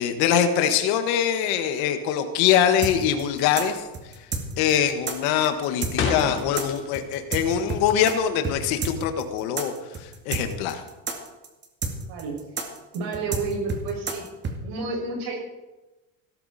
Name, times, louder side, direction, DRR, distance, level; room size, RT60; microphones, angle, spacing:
voice 1, 0.0-4.3 4.6-10.8, left 9 dB, 75° left, 7 dB, 1.7 m, -23 dB
sound 1, 2.7-3.1 3.4-3.8 4.1-4.6 4.9-7.2 7.5-9.0, left 5 dB, 35° left, 3.3 m, -30 dB
sound 2, 2.8-8.1 8.4-8.6 8.8-14.6, right 4 dB, 30° right, 2.2 m, -30 dB
voice 2, 12.1-12.4 12.9-14.3 14.6-15.4, right 3 dB, 65° right, 0 dB, 6.3 m, -30 dB
17.0 x 13.5 x 4.3 m, 1.1 s
cardioid pair, 140°, 38 cm